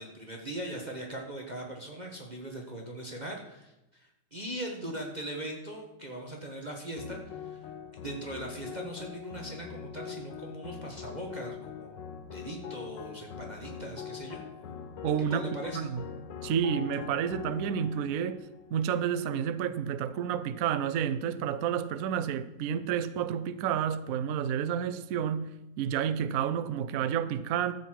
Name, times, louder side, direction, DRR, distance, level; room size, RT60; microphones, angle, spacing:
voice 1, 0.0-7.6 8.0-14.4 15.3-15.9, right 1 dB, 25° right, 1.4 m, -40 dB
sound 1, 7.0-19.5, left 8 dB, 80° left, 1.6 m, -43 dB
voice 2, 15.0-16.0 16.4-18.4 18.7-25.5 25.8-27.7, right 8 dB, 65° right, 0.9 m, -30 dB
13.5 x 8.3 x 4.6 m
omnidirectional pair, 1.9 m